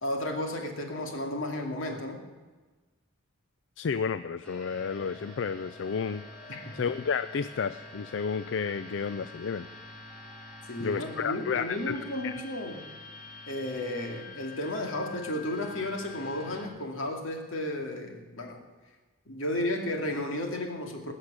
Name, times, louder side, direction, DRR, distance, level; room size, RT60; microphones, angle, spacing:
voice 1, 0.0-2.2 6.5-6.7 10.7-12.8 13.5-18.6 19.3-21.1, left 1 dB, 85° left, 3 dB, 2.4 m, -33 dB
voice 2, 3.8-6.2 6.7-9.7 10.8-12.0 12.2-12.3, left 6 dB, 65° left, 13 dB, 0.4 m, -31 dB
sound 1, 4.4-16.7, left 3 dB, 5° left, 2.9 m, -46 dB
19.5 x 6.6 x 8.5 m, 1.3 s
head